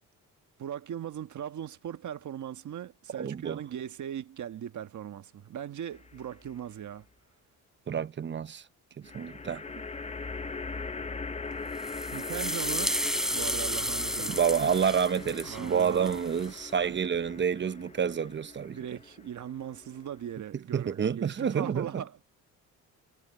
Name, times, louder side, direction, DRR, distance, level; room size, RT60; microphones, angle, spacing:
voice 1, 0.6-7.1 9.0-9.1 12.1-13.0 13.3-14.4 15.5-16.2 16.9-17.0 18.7-22.2, right 10 dB, 60° right, 1.5 m, -39 dB
voice 2, 3.2-3.6 7.9-8.7 9.0-9.6 14.3-18.8 20.7-22.0, right 7 dB, 35° right, 0.7 m, -28 dB
sound 1, 5.9-6.6 9.0-20.4, left 4 dB, 20° left, 0.9 m, -41 dB
sound 2, 11.7-16.6, equal, ahead, 3.4 m, -33 dB
cardioid pair, 95°, 33 cm